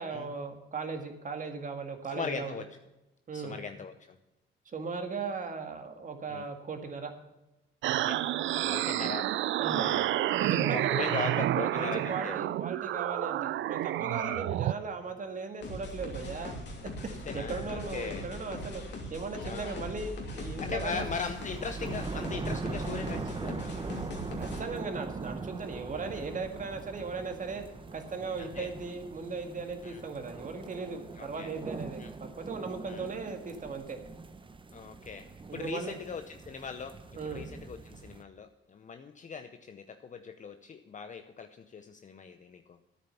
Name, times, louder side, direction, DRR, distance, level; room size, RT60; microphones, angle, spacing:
voice 1, 0.0-2.6 3.3-3.6 4.7-7.1 9.6-9.9 10.4-11.1 11.6-16.6 17.3-21.0 24.4-27.6 27.9-34.0 35.5-36.0 37.2-37.4, right 4 dB, 40° right, 5 dB, 1.9 m, -37 dB
voice 2, 2.1-2.6 3.3-3.9 6.3-6.4 8.0-8.2 8.6-9.3 9.7-10.1 10.7-12.4 14.2-14.6 17.1-18.2 19.4-19.8 20.6-23.9 28.4-28.7 29.8-30.0 31.2-31.5 32.0-32.1 32.9-33.0 34.7-35.3 35.5-36.9 37.3-42.8, left 5 dB, 40° left, 8 dB, 0.7 m, -39 dB
sound 1, 7.8-14.7, right 14 dB, 70° right, 0.4 m, -29 dB
sound 2, 15.6-24.6, left 1 dB, 60° left, 2.8 m, -40 dB
sound 3, 20.9-38.2, right 4 dB, 25° right, 0.9 m, -41 dB
10.0 x 8.6 x 7.0 m, 0.95 s
cardioid pair, 90°, 20 cm